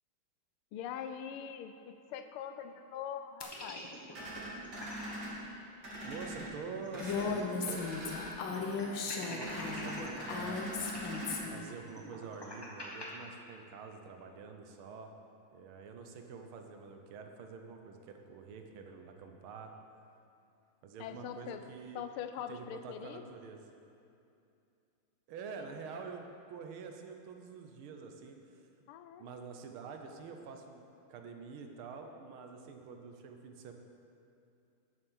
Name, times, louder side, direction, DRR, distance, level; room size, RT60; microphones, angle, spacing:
voice 1, 0.7-3.9 21.0-21.6 21.9-23.3 28.9-29.3, left 9 dB, 90° left, 9 dB, 1.5 m, -43 dB
sound 1, 3.4-5.1 5.5-5.6 5.9-7.6 7.9-8.0 8.5-10.1 10.8-13.1, equal, 15° left, 0.8 m, -46 dB
sound 2, 4.1-5.3 5.8-6.5 6.9-7.3 7.6-8.3 9.4-11.4, right 1 dB, 50° right, 2.8 m, -42 dB
voice 2, 6.0-7.9 8.5-11.0 11.5-15.1 15.5-19.7 20.8-22.0 22.5-23.6 25.3-26.2 26.5-28.6 29.2-33.7, right 5 dB, 80° right, 4 dB, 1.7 m, -47 dB
Female speech woman speaking, 7.0-11.7, left 4 dB, 70° left, 1.5 m, -37 dB
9.5 x 7.3 x 6.3 m, 2.6 s
omnidirectional pair, 2.3 m